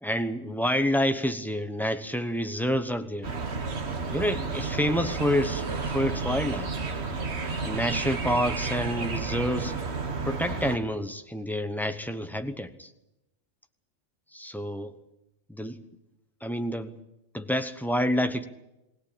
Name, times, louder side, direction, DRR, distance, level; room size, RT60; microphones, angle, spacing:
voice 1, 0.0-3.3 4.1-5.7 5.9-6.7 7.6-9.7 10.3-12.9 14.3-14.9 15.5-15.8 16.4-17.0 17.3-18.4, equal, ahead, 8 dB, 0.9 m, -28 dB
sound 1, 3.2-10.8, right 4 dB, 60° right, 1.7 m, -31 dB
20.0 x 17.5 x 8.7 m, 0.94 s
omnidirectional pair, 1.3 m